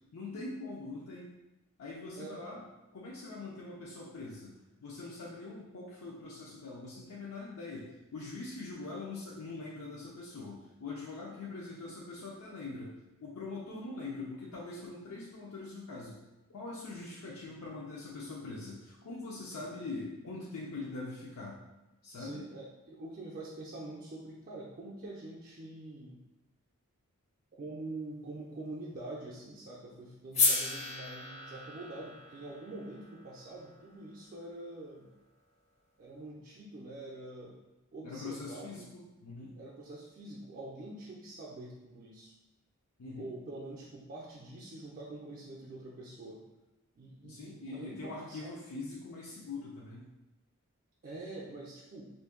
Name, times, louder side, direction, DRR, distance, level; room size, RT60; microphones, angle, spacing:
voice 1, 0.1-1.3 1.8-2.7 2.9-12.9 13.2-16.2 16.5-21.6 22.0-22.4 38.0-39.6 43.0-43.3 47.2-50.1, left 3 dB, 90° left, -5 dB, 0.5 m, -43 dB
voice 2, 22.2-26.2 27.6-35.1 36.0-37.6 37.9-38.9 39.6-42.3 43.1-46.4 47.0-48.5 51.0-52.1, right 2 dB, 40° right, -4 dB, 0.4 m, -45 dB
sound 1, 30.3-34.5, left 3 dB, 30° left, 0.5 m, -34 dB
2.6 x 2.5 x 3.6 m, 0.99 s
head